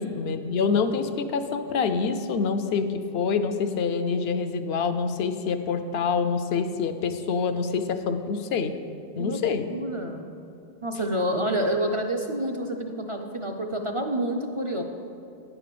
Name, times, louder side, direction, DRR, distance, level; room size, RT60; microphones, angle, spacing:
voice 1, 0.0-8.7 9.2-9.7, left 5 dB, 75° left, 9 dB, 0.8 m, -26 dB
voice 2, 9.2-10.2 10.8-14.8, right 1 dB, 40° right, 2 dB, 0.5 m, -28 dB
9.8 x 4.9 x 6.8 m, 2.7 s
omnidirectional pair, 1.1 m